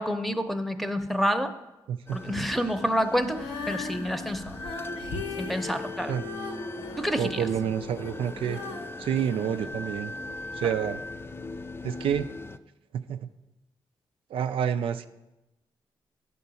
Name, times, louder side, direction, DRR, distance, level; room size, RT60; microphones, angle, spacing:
voice 1, 0.0-1.5 2.1-4.6 5.4-6.1 7.0-7.4, equal, ahead, 8 dB, 0.7 m, -28 dB
voice 2, 1.9-2.4 6.1-6.2 7.2-8.6 9.0-10.1 10.5-11.0 11.8-12.3 12.9-13.2 14.3-15.1, right 9 dB, 85° right, 8 dB, 0.4 m, -28 dB
sound 1, 2.1-12.6, left 3 dB, 25° left, 0.4 m, -39 dB
Female singing, 3.3-10.4 11.0-11.1, left 4 dB, 90° left, 1.0 m, -39 dB
10.5 x 3.8 x 6.9 m, 0.99 s
cardioid pair, 70°, 9 cm